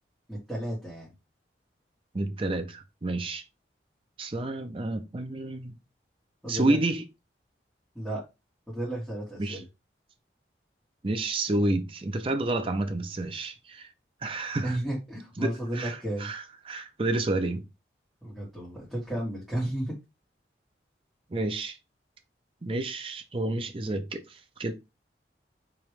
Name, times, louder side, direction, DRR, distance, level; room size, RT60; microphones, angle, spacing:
voice 1, 0.3-1.1 6.4-6.8 8.0-8.2 8.7-9.6 14.6-16.3 18.2-20.0, right 1 dB, ahead, 1.7 m, -33 dB
voice 2, 2.1-3.4 4.2-5.8 6.5-7.0 9.4-9.6 11.0-13.9 14.2-14.8 15.4-17.7 21.3-21.8 22.6-24.7, right 2 dB, 30° right, 0.5 m, -30 dB
4.8 x 2.9 x 3.2 m
head